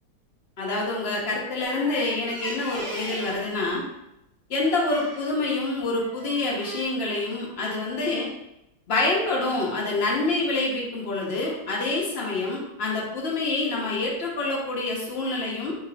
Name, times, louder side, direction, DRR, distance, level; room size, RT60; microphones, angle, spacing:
voice 1, 0.6-3.8 4.5-8.3 8.9-15.7, left 2 dB, 50° left, -2 dB, 0.8 m, -26 dB
sound 1, 1.6-3.5 4.9-5.3 5.9-6.8, right 1 dB, 45° right, 0.7 m, -38 dB
3.9 x 2.9 x 2.7 m, 0.86 s
omnidirectional pair, 1.8 m